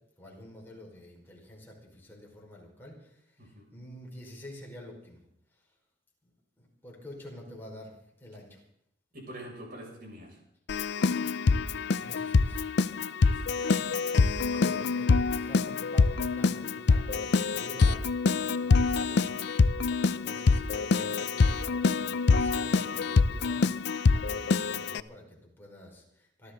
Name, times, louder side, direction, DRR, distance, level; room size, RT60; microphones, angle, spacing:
voice 1, 0.2-5.2 6.2-6.3 6.6-8.6 11.8-12.6 14.6-18.1 18.3-19.3 20.1-26.5, left 1 dB, 10° left, -2 dB, 5.2 m, -48 dB
voice 2, 3.4-3.7 9.1-10.4 13.2-13.9 14.4-14.8, equal, 50° right, -1 dB, 6.8 m, -46 dB
Keyboard (musical), 10.7-25.0, left 4 dB, 60° left, 0.5 m, -25 dB
27.0 x 12.5 x 4.0 m, 0.74 s
head